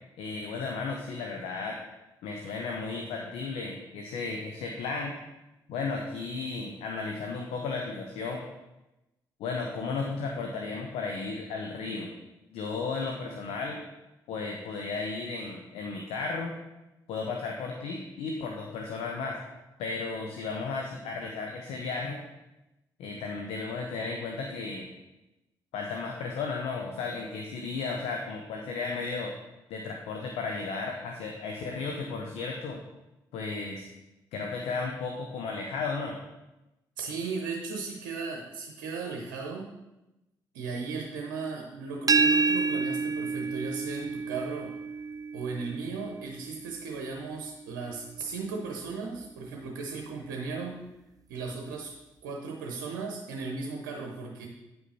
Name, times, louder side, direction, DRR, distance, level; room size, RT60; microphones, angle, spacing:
voice 1, 0.2-1.8 2.2-5.2 5.7-8.4 9.4-12.1 12.5-13.8 14.3-16.5 17.1-19.4 19.8-22.2 23.0-24.9 25.7-29.3 29.7-32.8 33.3-33.9 34.3-36.2, left 4 dB, 75° left, 2 dB, 0.9 m, -34 dB
voice 2, 37.0-39.7 40.5-44.7 45.3-50.8 51.3-51.9 52.2-54.5, right 4 dB, 80° right, 1 dB, 0.9 m, -36 dB
sound 1, 42.1-47.8, right 4 dB, 35° right, 0.5 m, -29 dB
9.3 x 5.5 x 4.2 m, 0.97 s
hypercardioid pair, 45°, 10 cm